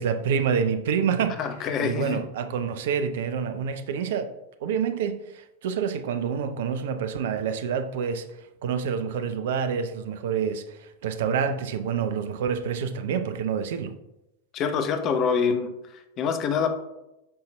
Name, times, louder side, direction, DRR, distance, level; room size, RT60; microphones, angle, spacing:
voice 1, 0.0-1.4 1.8-4.3 4.6-8.2 8.6-13.9, right 7 dB, 55° right, 10 dB, 0.5 m, -27 dB
voice 2, 1.4-2.2 14.5-15.7 16.2-16.7, left 6 dB, 35° left, 7 dB, 0.8 m, -25 dB
8.7 x 5.6 x 2.2 m, 0.91 s
figure-of-eight pair, 90°, 0 cm